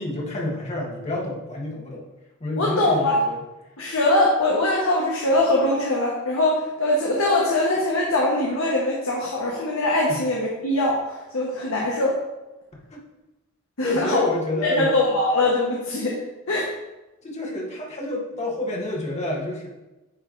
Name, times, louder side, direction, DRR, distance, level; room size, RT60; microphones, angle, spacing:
voice 1, 0.0-2.0 2.4-3.4 10.1-10.2 12.7-13.0 13.8-15.0 17.2-19.7, left 2 dB, 35° left, -3 dB, 1.6 m, -28 dB
voice 2, 2.6-3.2 3.8-12.2 13.8-14.2 14.6-16.2 16.5-16.7, left 2 dB, 70° left, -3 dB, 1.1 m, -22 dB
9.7 x 3.3 x 3.8 m, 1.0 s
head